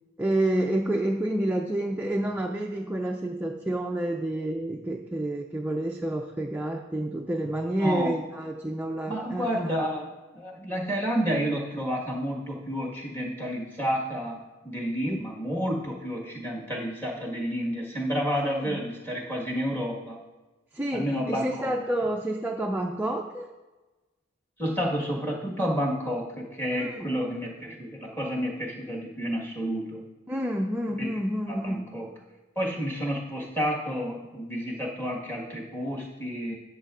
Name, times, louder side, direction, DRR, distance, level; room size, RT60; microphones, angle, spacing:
voice 1, 0.2-9.7 15.1-15.2 18.5-18.8 20.7-23.5 26.7-27.1 30.3-31.9, right 1 dB, 10° right, 1 dB, 0.4 m, -29 dB
voice 2, 7.8-8.1 9.1-10.1 10.3-20.2 20.9-21.7 24.6-30.0 31.0-31.1 31.5-32.1 32.5-36.6, equal, 10° left, -3 dB, 1.5 m, -30 dB
12.5 x 7.5 x 2.5 m, 1.2 s
head